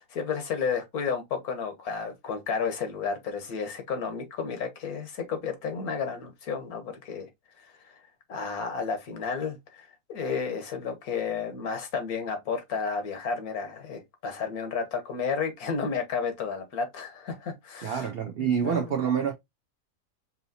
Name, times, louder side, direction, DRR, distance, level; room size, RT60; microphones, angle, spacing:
voice 1, 0.0-7.3 8.3-18.1 18.4-18.9, left 5 dB, 70° left, 1.6 m, -32 dB
voice 2, 17.8-19.3, right 8 dB, 65° right, 0.5 m, -27 dB
5.5 x 2.8 x 2.7 m
omnidirectional pair, 1.6 m